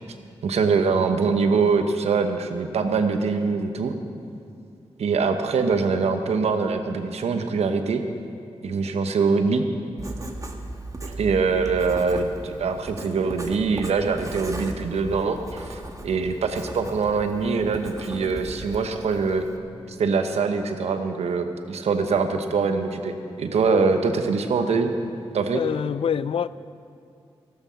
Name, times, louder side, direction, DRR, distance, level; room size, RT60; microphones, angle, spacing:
voice 1, 0.4-3.9 5.0-8.0 8.6-9.6 11.0-19.4 19.9-24.9 25.3-25.6, right 4 dB, 80° right, 7 dB, 1.0 m, -23 dB
Writing, 10.0-19.6, right 1 dB, 30° right, 1.4 m, -37 dB
voice 2, 25.5-26.5, left 8 dB, 60° left, 17 dB, 0.4 m, -25 dB
13.5 x 12.5 x 5.7 m, 2.4 s
cardioid pair, 50°, 11 cm